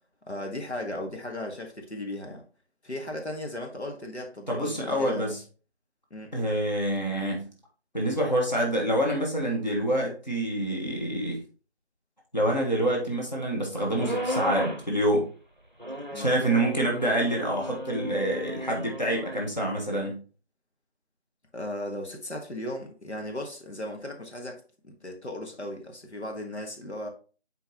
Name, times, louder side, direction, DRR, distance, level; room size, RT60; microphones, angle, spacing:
voice 1, 0.3-2.4 2.8-5.3 6.1-6.3 16.1-16.3 21.5-27.1, left 1 dB, 85° left, 2 dB, 1.5 m, -36 dB
voice 2, 4.5-5.4 6.3-7.5 7.9-11.4 12.3-15.3 16.1-20.2, right 1 dB, 40° left, -1 dB, 1.5 m, -27 dB
sound 1, 14.0-14.9 15.8-19.5, equal, 45° right, 0.6 m, -34 dB
7.0 x 4.6 x 3.0 m, 0.37 s
figure-of-eight pair, 180°, 33 cm